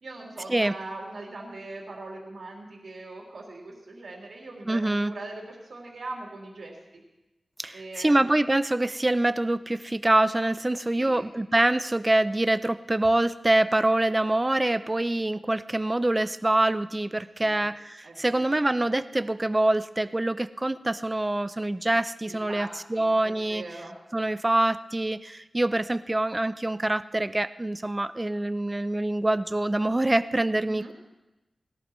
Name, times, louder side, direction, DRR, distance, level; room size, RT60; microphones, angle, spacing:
voice 1, 0.0-7.0 7.7-8.3 11.0-11.3 17.4-17.7 18.0-18.5 18.8-18.9 22.3-24.0 30.6-30.9, right 2 dB, 75° right, -3 dB, 3.2 m, -41 dB
voice 2, 4.7-5.1 7.6-23.6 24.1-30.9, right 1 dB, 20° right, 13 dB, 0.5 m, -25 dB
20.5 x 18.0 x 3.1 m, 1.0 s
wide cardioid pair, 125°, 0 cm